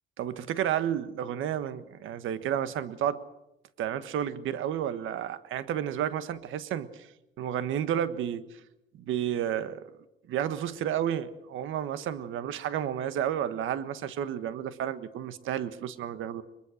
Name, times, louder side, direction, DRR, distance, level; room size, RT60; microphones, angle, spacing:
voice 1, 0.2-3.2 3.8-6.9 7.4-8.5 9.1-9.8 10.3-16.4, right 10 dB, 85° right, 13 dB, 1.4 m, -31 dB
22.5 x 22.0 x 6.5 m, 0.89 s
cardioid pair, 90°, 20 cm